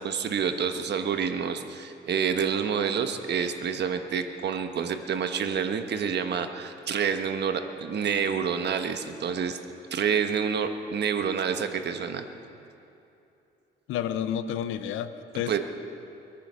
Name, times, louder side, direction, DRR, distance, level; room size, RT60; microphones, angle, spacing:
voice 1, 0.0-9.6 9.9-12.3 15.5-15.6, right 7 dB, 60° right, 7 dB, 1.2 m, -28 dB
voice 2, 13.9-15.6, left 9 dB, 85° left, 12 dB, 0.8 m, -30 dB
22.5 x 10.0 x 6.3 m, 2.8 s
cardioid pair, 90°, 20 cm